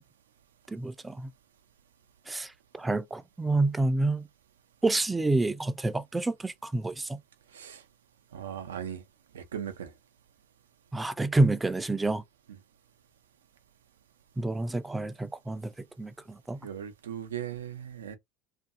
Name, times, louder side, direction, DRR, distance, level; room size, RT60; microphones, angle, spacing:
voice 1, 0.7-1.3 2.3-4.2 4.8-7.2 10.9-12.2 14.4-15.7 16.0-16.6, right 2 dB, 15° right, 0.4 m, -28 dB
voice 2, 8.3-9.0 9.3-9.9 16.6-18.2, right 9 dB, 85° right, 0.5 m, -38 dB
2.6 x 2.5 x 2.5 m
hypercardioid pair, 75°, 0 cm